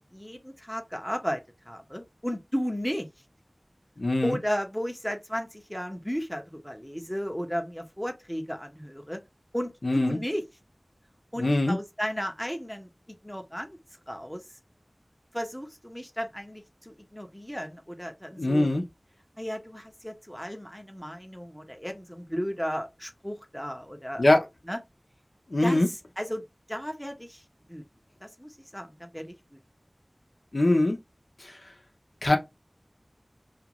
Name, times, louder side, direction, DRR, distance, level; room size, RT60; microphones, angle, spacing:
voice 1, 0.1-3.1 4.2-9.2 9.5-10.4 11.3-12.9 13.2-13.8 14.1-14.4 15.3-18.7 19.4-24.3 24.7-24.8 25.6-26.4 26.7-27.4 27.7-27.8 28.2-29.6, equal, 5° left, 0.7 m, -34 dB
voice 2, 4.0-4.4 9.8-10.2 11.4-11.8 18.4-18.8 24.2-24.4 25.5-25.9 30.5-31.0 31.4-31.6 32.2-32.4, left 2 dB, 80° left, 0.7 m, -22 dB
2.5 x 2.5 x 2.9 m
wide cardioid pair, 40°, 0 cm